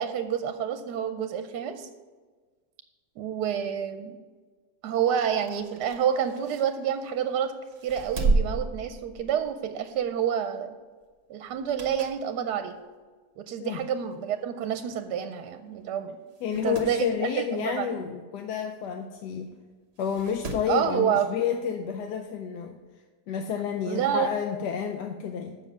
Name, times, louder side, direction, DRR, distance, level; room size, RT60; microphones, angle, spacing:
voice 1, 0.0-1.9 3.2-4.2 4.8-7.5 7.8-10.8 11.3-12.7 13.4-16.1 16.6-17.9 20.7-21.3 23.9-24.3, right 9 dB, 80° right, 8 dB, 1.1 m, -28 dB
sound 1, 5.3-7.2 7.7-9.6 10.0-10.2 11.5-12.3 12.7-12.8 13.7-13.8 14.1-14.2 14.3-14.4 15.3-15.5 15.8-15.9 16.3-17.0 18.8-18.9 20.0-20.8 22.1-22.2, right 3 dB, 45° right, 1.1 m, -32 dB
voice 2, 16.4-19.5 20.0-22.8 23.3-25.6, left 8 dB, 80° left, 4 dB, 1.2 m, -30 dB
7.2 x 6.2 x 6.7 m, 1.4 s
omnidirectional pair, 1.8 m